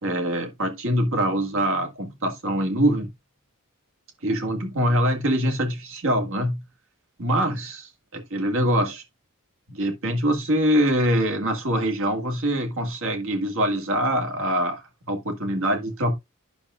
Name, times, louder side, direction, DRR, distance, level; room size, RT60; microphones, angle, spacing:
voice 1, 0.0-3.1 4.2-6.6 7.2-9.0 9.7-16.1, equal, 65° right, 1.8 m, -24 dB
10.5 x 6.1 x 2.4 m
head